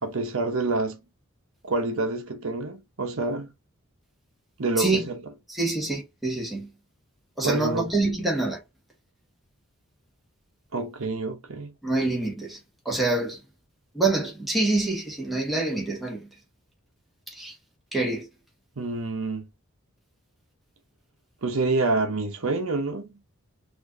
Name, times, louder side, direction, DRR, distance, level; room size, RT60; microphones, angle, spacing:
voice 1, 0.0-1.0 1.6-3.5 4.6-5.2 7.4-7.9 10.7-11.7 18.8-19.5 21.4-23.1, right 3 dB, 70° right, 0.8 m, -27 dB
voice 2, 5.5-6.7 7.4-8.6 11.8-12.6 12.8-13.4 13.9-16.3 17.3-17.5 17.9-18.3, right 2 dB, ahead, 1.2 m, -26 dB
4.3 x 2.6 x 2.6 m
head